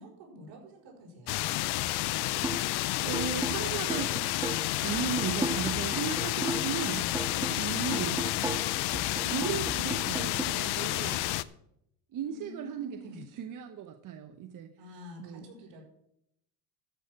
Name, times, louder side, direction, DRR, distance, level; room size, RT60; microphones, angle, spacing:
voice 1, 0.0-1.4 12.2-13.3 14.8-15.9, equal, 70° right, -1 dB, 5.5 m, -48 dB
sound 1, 1.3-11.4, left 17 dB, 60° left, 0.6 m, -30 dB
sound 2, 2.4-2.8 3.1-6.8 7.1-10.4, right 3 dB, 10° right, 0.7 m, -37 dB
voice 2, 2.7-4.1 4.8-7.2 7.5-8.2 9.3-11.3 12.1-14.7 15.2-15.5, right 8 dB, 45° right, 6 dB, 1.0 m, -36 dB
13.5 x 6.7 x 6.1 m, 0.76 s
cardioid pair, 125°, 44 cm